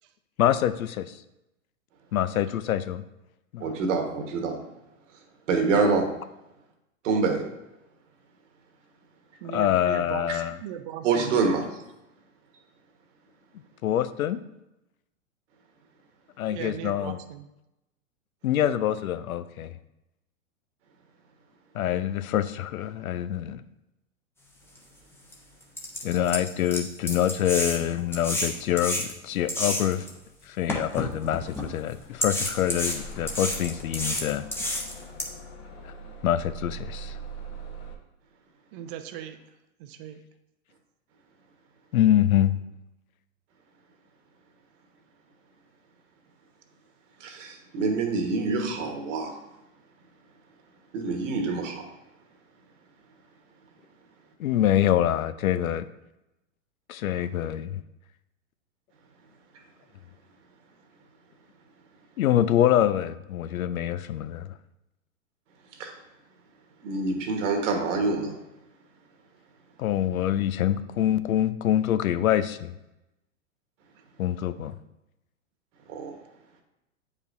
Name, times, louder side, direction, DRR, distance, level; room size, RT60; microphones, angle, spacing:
voice 1, 0.4-1.1 2.1-3.0 3.5-3.7 9.5-10.6 13.8-14.4 16.4-17.2 18.4-19.7 21.7-23.6 26.0-30.1 30.5-34.5 36.2-37.2 41.9-42.6 54.4-55.9 56.9-57.8 62.2-64.5 69.8-72.7 74.2-74.7, left 11 dB, 80° left, 13 dB, 0.6 m, -25 dB
voice 2, 3.6-4.6 5.5-6.1 7.0-7.4 10.3-10.4 11.0-11.8 47.2-49.4 50.9-51.9 65.8-65.9 66.8-68.4 75.9-76.1, right 4 dB, 60° right, 3 dB, 1.4 m, -26 dB
voice 3, 9.4-11.4 16.5-17.5 38.7-39.4 39.8-40.2, right 10 dB, 40° right, 10 dB, 0.6 m, -38 dB
sound 1, 24.8-24.9 25.3-25.4 25.8-30.1 30.7-31.7 32.2-35.2, left 1 dB, 5° left, 0.7 m, -30 dB
Bus / Engine starting, 31.2-37.9, right 2 dB, 45° left, 1.3 m, -42 dB
8.4 x 4.9 x 2.6 m, 0.92 s
hypercardioid pair, 115°, 41 cm